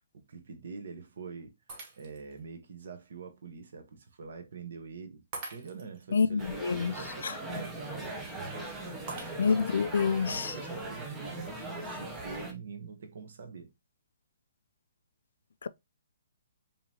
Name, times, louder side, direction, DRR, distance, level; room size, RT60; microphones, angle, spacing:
voice 1, 0.1-1.5 2.0-5.2 5.5-8.3 8.6-9.2 10.1-13.7, right 5 dB, 55° right, 0.9 m, -45 dB
Shatter, 1.7-2.4 3.0-3.1 5.3-6.1 9.1-9.8, right 3 dB, 25° right, 0.9 m, -44 dB
voice 2, 6.1-6.9 7.2-7.3 9.4-10.5 15.6-15.7, left 5 dB, 70° left, 0.3 m, -27 dB
sound 1, 6.4-12.5, right 1 dB, 5° right, 0.5 m, -39 dB
5.1 x 2.8 x 2.7 m
hypercardioid pair, 175°, 0 cm